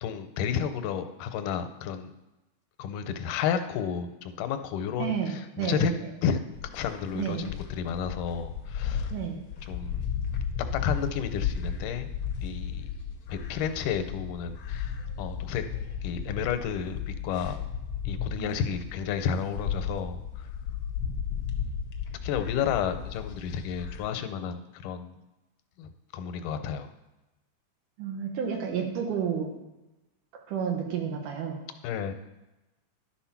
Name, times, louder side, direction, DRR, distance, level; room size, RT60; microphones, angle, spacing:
voice 1, 0.0-2.1 2.8-5.9 6.2-6.4 6.7-9.1 9.7-10.1 10.7-12.1 12.4-12.9 13.3-14.9 15.2-15.6 16.0-17.6 18.1-20.5 22.2-25.2 25.8-26.9 31.8-32.1, left 7 dB, 85° left, 9 dB, 2.3 m, -31 dB
voice 2, 5.0-6.1 7.2-7.5 9.1-9.4 18.4-18.6 28.0-29.5 30.5-31.6, right 7 dB, 80° right, 2 dB, 2.8 m, -31 dB
sound 1, 6.5-24.1, left 7 dB, 70° left, 1.2 m, -34 dB
11.5 x 4.5 x 5.8 m, 1.0 s
omnidirectional pair, 3.6 m